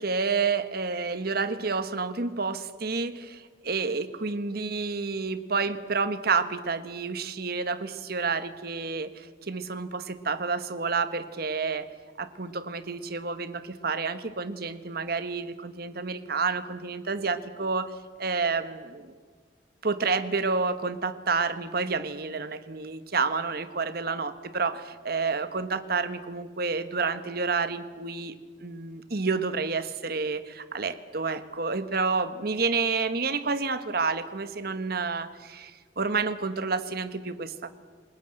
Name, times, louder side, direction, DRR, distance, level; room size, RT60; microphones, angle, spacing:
voice 1, 0.0-11.9 12.2-17.9 18.2-19.2 19.8-35.7 36.0-37.7, right 4 dB, 60° right, 11 dB, 1.4 m, -29 dB
27.5 x 20.0 x 7.8 m, 1.5 s
head